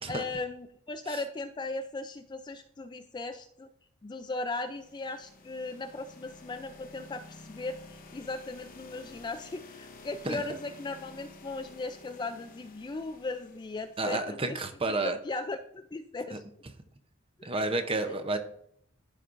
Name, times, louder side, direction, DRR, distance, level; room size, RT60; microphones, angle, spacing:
voice 1, 0.1-3.7 4.0-16.4 17.4-17.5, left 3 dB, 20° left, 8 dB, 0.3 m, -37 dB
sound 1, 4.5-14.4, left 3 dB, 40° left, 0.8 m, -52 dB
voice 2, 14.0-15.2 16.3-16.4 17.4-18.4, right 2 dB, 25° right, 8 dB, 0.7 m, -30 dB
14.0 x 5.3 x 2.5 m, 0.69 s
head